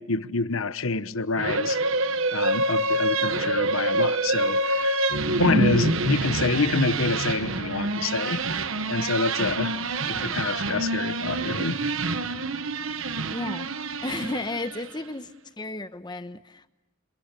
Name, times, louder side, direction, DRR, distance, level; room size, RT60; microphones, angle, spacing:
voice 1, 0.0-1.8 2.3-8.4 8.9-9.7 10.1-11.9, left 3 dB, 75° left, 1.1 m, -27 dB
sound 1, 1.4-15.0, right 2 dB, 75° right, 1.2 m, -26 dB
voice 2, 5.3-5.8 13.3-13.7 14.0-15.3 15.6-16.7, left 2 dB, 20° left, 1.0 m, -32 dB
29.0 x 27.0 x 6.8 m
head